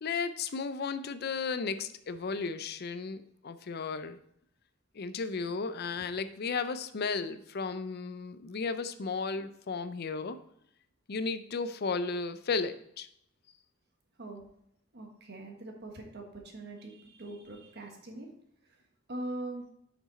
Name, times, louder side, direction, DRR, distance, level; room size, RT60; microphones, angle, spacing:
voice 1, 0.0-4.2 4.9-10.4 11.1-13.1, left 4 dB, 50° left, 12 dB, 0.5 m, -34 dB
voice 2, 14.9-18.3 19.1-19.7, right 2 dB, 55° right, 2 dB, 1.4 m, -42 dB
7.2 x 6.0 x 4.1 m, 0.71 s
head